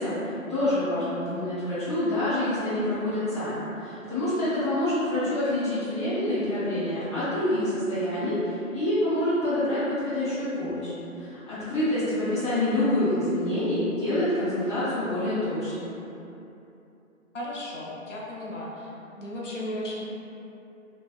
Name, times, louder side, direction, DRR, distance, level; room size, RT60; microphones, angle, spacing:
voice 1, 0.0-15.9, left 1 dB, 20° right, -17 dB, 0.5 m, -27 dB
voice 2, 17.3-18.9 19.2-20.1, left 1 dB, 60° left, -5 dB, 0.5 m, -35 dB
2.7 x 2.1 x 2.3 m, 2.8 s
figure-of-eight pair, 150°, 42 cm